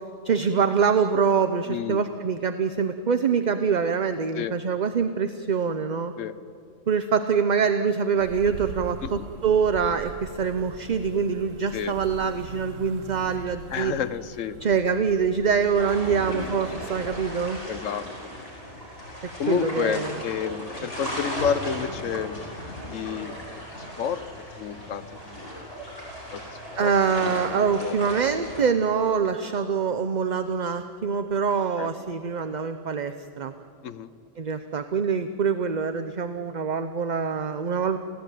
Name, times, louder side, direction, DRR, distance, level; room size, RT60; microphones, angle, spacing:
voice 1, 0.2-6.1 6.9-13.9 14.6-17.6 19.2-20.1 26.8-33.5 34.4-38.0, right 6 dB, 45° right, 9 dB, 0.7 m, -25 dB
voice 2, 1.7-2.0 4.3-4.5 6.2-6.4 9.0-9.3 11.7-11.9 13.7-14.6 16.1-16.2 17.7-18.1 19.4-22.4 22.9-24.2 24.6-25.7 26.3-26.4 26.7-26.9 27.5-28.2 31.8-31.9 33.8-34.1, left 8 dB, 85° left, 13 dB, 1.2 m, -30 dB
sound 1, 8.2-17.3, right 7 dB, 80° right, 1.2 m, -42 dB
sound 2, 15.8-28.6, equal, 55° left, 7.8 m, -36 dB
29.0 x 16.0 x 9.1 m, 2.6 s
omnidirectional pair, 1.3 m